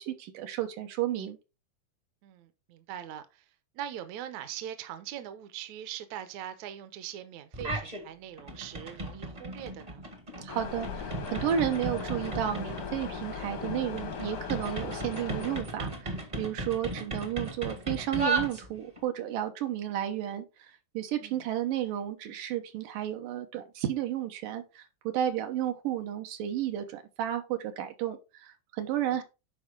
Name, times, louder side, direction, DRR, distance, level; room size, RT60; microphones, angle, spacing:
voice 1, 0.0-1.4 10.4-29.2, right 11 dB, 90° right, 2.8 m, -32 dB
voice 2, 2.2-3.5 3.7-10.0 21.2-21.4 29.1-29.2, right 11 dB, 70° right, 2.1 m, -42 dB
sound 1, 7.5-8.0 8.4-19.0, right 2 dB, 35° right, 0.5 m, -36 dB
sound 2, 10.5-15.6, left 6 dB, 90° left, 3.4 m, -38 dB
11.0 x 4.5 x 3.7 m
omnidirectional pair, 3.7 m